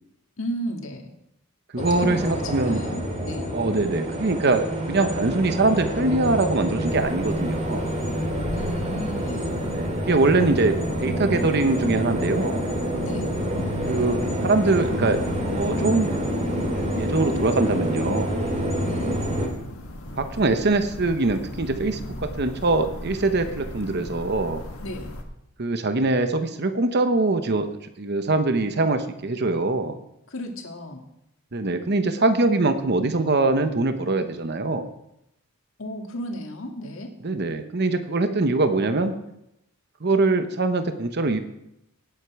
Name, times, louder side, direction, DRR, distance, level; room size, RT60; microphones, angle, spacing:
voice 1, 0.4-1.1 1.7-3.5 8.5-9.6 13.0-13.3 18.8-19.2 24.8-25.1 30.3-31.1 35.8-37.1, equal, 65° left, 3 dB, 1.9 m, -34 dB
voice 2, 1.7-2.9 3.5-7.8 9.7-10.8 11.0-12.6 13.9-16.1 16.9-18.4 20.2-24.6 25.6-27.7 28.0-30.0 31.5-34.9 37.2-39.1 40.0-41.4, right 2 dB, 50° right, 9 dB, 0.9 m, -23 dB
sound 1, 1.8-19.5, equal, 30° right, 2.3 m, -27 dB
sound 2, 6.9-25.2, left 1 dB, 80° left, 1.6 m, -39 dB
17.5 x 8.3 x 4.8 m, 0.84 s
head